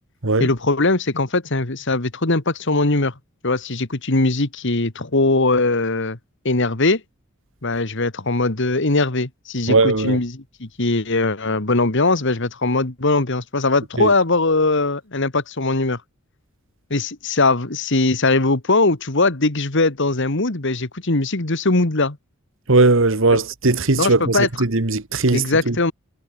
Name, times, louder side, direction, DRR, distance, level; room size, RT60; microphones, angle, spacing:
voice 1, 0.4-3.1 3.4-6.2 6.4-7.0 7.6-16.0 16.9-22.2 24.0-24.6 25.3-25.9, left 2 dB, 60° left, 1.9 m, -20 dB
voice 2, 9.7-10.2 14.0-14.1 22.7-25.7, right 3 dB, 65° right, 1.6 m, -18 dB
head